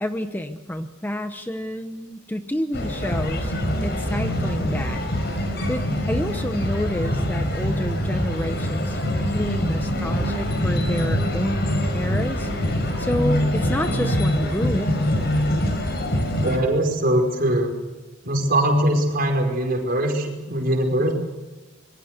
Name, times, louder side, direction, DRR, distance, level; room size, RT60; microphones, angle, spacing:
voice 1, 0.0-3.5 3.8-5.0 5.7-11.7 11.9-12.5 13.0-15.0, equal, 10° left, 7 dB, 0.9 m, -29 dB
sound 1, 2.7-16.6, equal, 55° left, 5.7 m, -24 dB
voice 2, 16.4-17.7 18.2-21.1, right 1 dB, 50° right, 2 dB, 5.2 m, -21 dB
26.5 x 22.5 x 6.7 m, 1.1 s
head